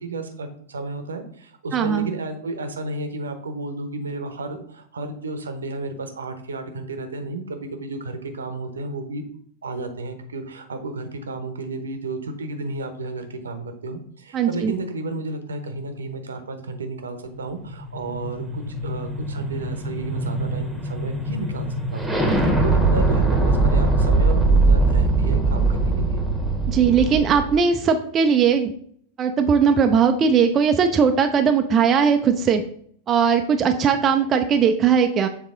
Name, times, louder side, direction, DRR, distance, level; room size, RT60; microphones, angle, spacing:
voice 1, 0.0-9.2 9.6-22.2 22.4-26.2, right 3 dB, 70° right, 7 dB, 0.8 m, -32 dB
voice 2, 1.7-2.1 14.3-14.7 26.7-28.7 29.2-32.6 33.1-35.3, right 6 dB, 25° right, 5 dB, 0.4 m, -19 dB
sound 1, 17.4-27.6, right 3 dB, ahead, 1.2 m, -21 dB
7.1 x 3.6 x 3.7 m, 0.63 s
figure-of-eight pair, 90°, 0 cm